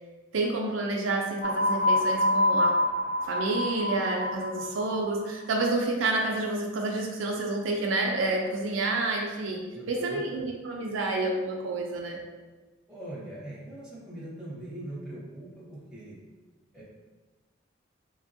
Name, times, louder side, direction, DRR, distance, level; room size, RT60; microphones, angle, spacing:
voice 1, 0.3-2.7 3.3-12.2, right 2 dB, 75° right, 0 dB, 0.4 m, -29 dB
sound 1, 1.4-5.0, left 1 dB, 65° left, 0.6 m, -26 dB
voice 2, 9.7-10.2 12.9-16.2 16.7-16.8, right 1 dB, 5° right, -7 dB, 0.9 m, -41 dB
3.2 x 2.2 x 2.6 m, 1.2 s
head